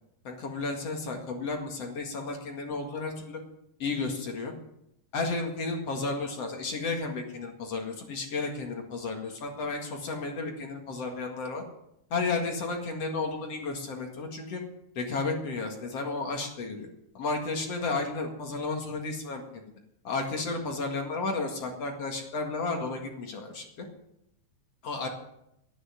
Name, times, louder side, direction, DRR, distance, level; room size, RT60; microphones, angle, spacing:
voice 1, 0.2-3.4 3.8-4.5 5.1-11.6 12.1-14.6 15.0-16.9 17.1-19.6 20.0-23.9 24.8-25.1, left 3 dB, 50° left, 2 dB, 1.9 m, -33 dB
11.5 x 10.0 x 9.8 m, 0.80 s
omnidirectional pair, 5.4 m